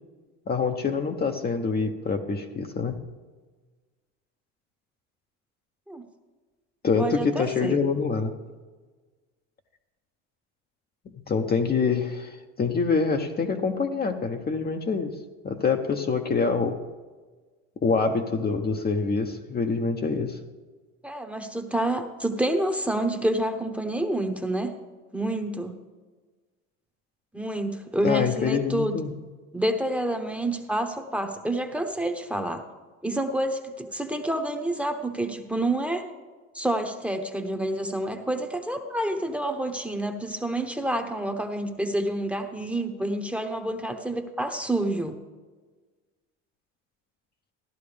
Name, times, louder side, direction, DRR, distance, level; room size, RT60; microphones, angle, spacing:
voice 1, 0.5-3.0 6.8-8.3 11.3-15.2 15.4-16.8 17.8-20.4 28.0-29.2, left 5 dB, 25° left, 4 dB, 0.9 m, -25 dB
voice 2, 7.0-7.8 21.0-24.8 25.1-25.8 27.3-29.0 29.5-32.6 33.0-36.1 36.5-45.2, right 1 dB, 5° right, 7 dB, 1.1 m, -28 dB
14.5 x 11.0 x 3.4 m, 1.3 s
hypercardioid pair, 85°, 35 cm